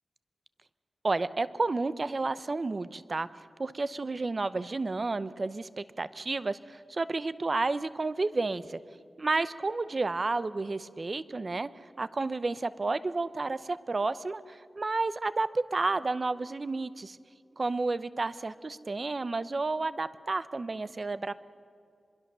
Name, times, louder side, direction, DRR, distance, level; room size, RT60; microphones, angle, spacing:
voice 1, 1.0-3.3 3.6-8.8 9.2-11.7 12.0-17.2 17.6-21.3, right 3 dB, 40° right, 15 dB, 0.7 m, -31 dB
24.0 x 22.0 x 6.8 m, 2.3 s
wide cardioid pair, 115°, 0 cm